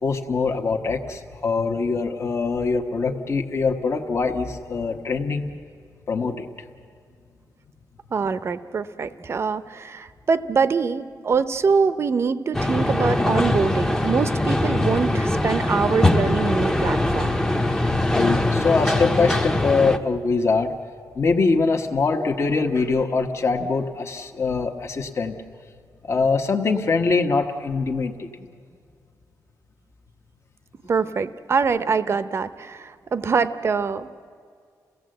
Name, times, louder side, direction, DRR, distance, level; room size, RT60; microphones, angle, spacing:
voice 1, 0.0-5.5 6.1-6.5 18.1-20.7 21.1-25.4 26.0-28.5, left 4 dB, 40° left, 4 dB, 1.2 m, -23 dB
voice 2, 8.1-17.4 30.9-34.1, right 5 dB, 40° right, 12 dB, 0.7 m, -24 dB
sound 1, 12.5-20.0, left 1 dB, 10° left, 0.8 m, -22 dB
29.0 x 16.5 x 7.8 m, 2.2 s
wide cardioid pair, 150°, 7 cm